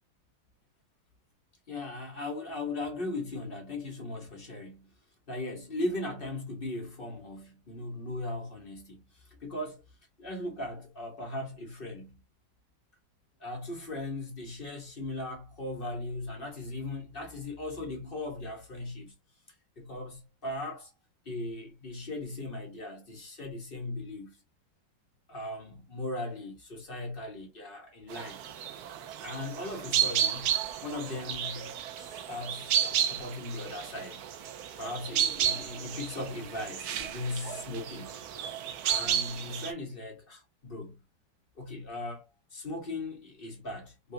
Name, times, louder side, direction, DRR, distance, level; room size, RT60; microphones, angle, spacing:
voice 1, 1.7-4.9 5.3-9.8 10.2-12.2 13.4-19.1 19.8-20.9 21.2-24.4 25.3-28.4 29.2-34.2 34.8-38.2 38.8-41.0 41.6-42.3 42.5-44.1, left 2 dB, 40° left, 0.8 m, -38 dB
sound 1, 28.1-39.7, right 9 dB, 80° right, 0.8 m, -32 dB
3.7 x 2.4 x 2.6 m
omnidirectional pair, 2.1 m